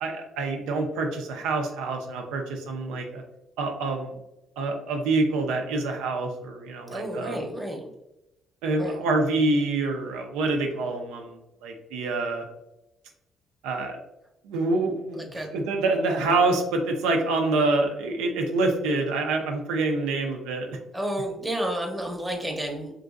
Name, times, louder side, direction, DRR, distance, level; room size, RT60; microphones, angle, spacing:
voice 1, 0.0-3.2 3.6-4.2 4.6-7.4 8.6-12.4 13.6-14.0 14.4-15.2 15.5-20.8, right 3 dB, 90° right, 3 dB, 0.4 m, -26 dB
voice 2, 6.9-7.9 8.8-9.0 15.1-15.5 16.2-16.4 20.9-22.9, right 1 dB, 10° right, 2 dB, 0.7 m, -31 dB
2.9 x 2.5 x 2.4 m, 0.89 s
supercardioid pair, 65°, 0 cm